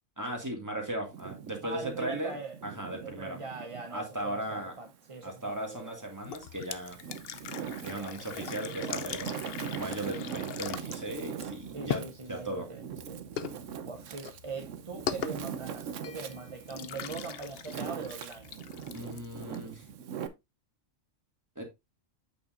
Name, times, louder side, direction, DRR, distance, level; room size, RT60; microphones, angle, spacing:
voice 1, 0.2-2.4 2.6-3.4 3.9-4.7 5.2-7.0 7.8-9.4 9.7-12.0 12.3-12.7 18.9-19.9 21.6-21.7, right 1 dB, 15° right, 2.0 m, -37 dB
Wind, 1.0-3.9 4.4-5.7 6.3-20.3, right 8 dB, 65° right, 1.1 m, -41 dB
voice 2, 1.6-2.6 3.0-6.1 7.8-8.9 11.7-13.2 13.8-18.5, right 4 dB, 30° right, 0.6 m, -42 dB
sound 1, 6.2-19.9, left 9 dB, 60° left, 0.7 m, -41 dB
8.4 x 6.4 x 2.5 m
omnidirectional pair, 1.4 m